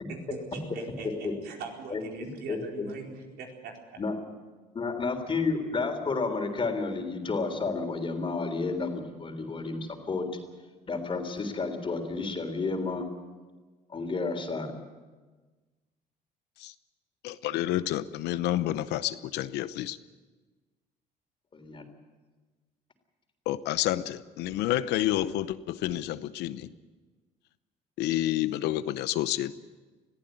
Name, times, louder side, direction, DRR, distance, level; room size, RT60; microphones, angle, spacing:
voice 1, 0.1-3.7, right 5 dB, 75° right, 1 dB, 4.5 m, -41 dB
voice 2, 1.9-2.9 4.0-4.2 4.8-10.3 10.9-13.0 13.9-14.7 21.5-21.9, left 4 dB, 30° left, 5 dB, 3.6 m, -31 dB
voice 3, 17.2-20.0 23.5-26.7 28.0-29.5, left 13 dB, 85° left, 14 dB, 0.8 m, -29 dB
21.5 x 14.5 x 9.2 m, 1.3 s
cardioid pair, 110°, 17 cm